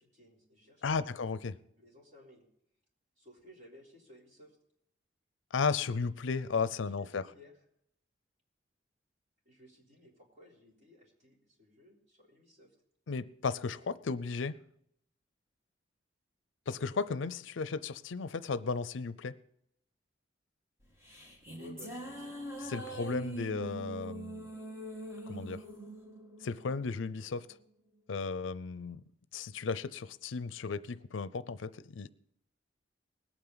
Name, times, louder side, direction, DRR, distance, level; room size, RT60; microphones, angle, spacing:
voice 1, 0.0-1.4 1.8-2.5 3.2-4.6 6.8-7.5 9.4-12.8 21.6-22.4, left 1 dB, 40° right, 3.7 m, -58 dB
voice 2, 0.8-1.5 5.5-7.2 13.1-14.6 16.7-19.3 22.6-24.5 25.3-25.6 26.4-27.5 28.1-29.0 29.3-32.1, left 4 dB, 80° left, 0.5 m, -35 dB
sound 1, 20.8-27.4, right 2 dB, 15° right, 1.7 m, -43 dB
20.5 x 8.9 x 3.9 m
head